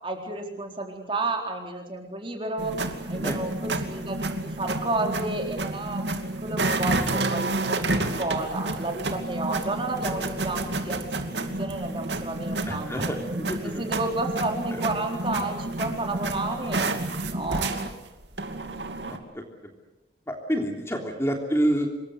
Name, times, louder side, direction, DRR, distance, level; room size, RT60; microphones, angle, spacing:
voice 1, 0.0-2.7 3.1-6.0 6.4-11.1 11.4-12.9 13.6-17.7, right 2 dB, 30° right, 2 dB, 4.0 m, -31 dB
sound 1, 2.6-19.2, right 2 dB, 90° right, 2.7 m, -30 dB
voice 2, 12.7-13.8 14.7-14.8 19.1-19.4 20.3-21.9, right 1 dB, 15° left, 2 dB, 3.2 m, -28 dB
26.5 x 22.0 x 8.1 m, 0.97 s
head